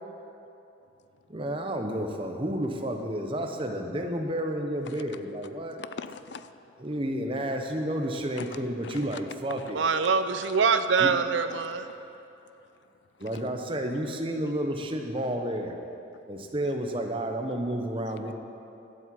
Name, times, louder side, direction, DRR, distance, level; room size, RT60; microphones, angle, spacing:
voice 1, 1.3-5.8 6.8-9.8 11.0-11.1 13.2-15.7 16.3-18.3, right 1 dB, 30° right, 4 dB, 0.9 m, -31 dB
voice 2, 4.8-5.2 5.8-6.6 8.4-8.5 8.8-9.2 9.6-9.7 10.4-10.6 11.5-11.9 13.2-13.4, left 5 dB, 70° left, 12 dB, 0.5 m, -43 dB
voice 3, 9.7-11.8, right 5 dB, 75° right, 10 dB, 0.6 m, -24 dB
12.0 x 7.6 x 7.6 m, 2.8 s
head